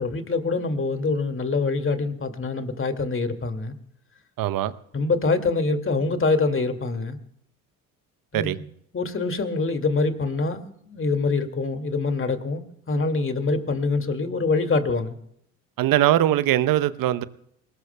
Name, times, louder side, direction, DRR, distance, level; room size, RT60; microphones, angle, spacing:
voice 1, 0.0-3.7 4.9-7.2 8.3-8.6 8.9-15.2, left 3 dB, 30° left, 2.2 m, -25 dB
voice 2, 4.4-4.7 8.3-8.6 15.8-17.2, right 13 dB, 55° right, 0.9 m, -21 dB
28.0 x 19.0 x 2.3 m
hypercardioid pair, 50°, 40 cm